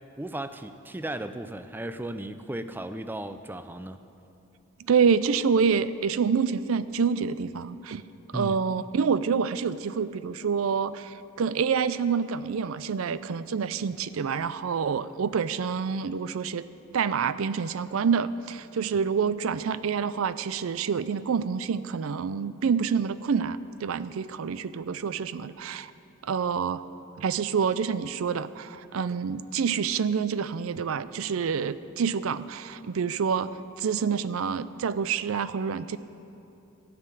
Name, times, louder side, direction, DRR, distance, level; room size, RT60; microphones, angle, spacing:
voice 1, 0.2-4.0 8.3-8.6, right 1 dB, 10° right, 10 dB, 0.4 m, -35 dB
voice 2, 4.8-8.0 8.3-16.6 16.9-25.9 26.2-26.8 27.2-36.0, right 6 dB, 80° right, 15 dB, 0.4 m, -27 dB
13.0 x 6.7 x 9.3 m, 2.9 s
head